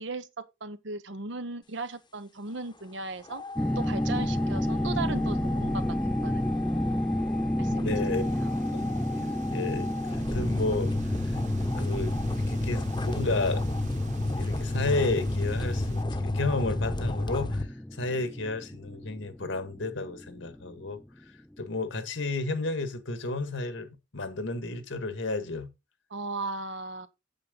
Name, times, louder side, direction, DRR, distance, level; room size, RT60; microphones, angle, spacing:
voice 1, 0.0-3.4 3.8-6.4 7.6-7.9 8.3-8.5 26.1-27.1, right 3 dB, 65° right, 1.0 m, -37 dB
sound 1, 3.2-17.6, left 2 dB, 25° left, 1.0 m, -32 dB
sound 2, 3.6-20.7, left 1 dB, 5° left, 0.4 m, -32 dB
voice 2, 7.7-8.2 8.7-11.4 11.8-13.6 14.0-21.0 21.6-25.7, left 2 dB, 75° left, 1.7 m, -32 dB
Wind, 8.1-16.0, right 3 dB, 40° right, 0.6 m, -45 dB
8.5 x 7.8 x 3.8 m
head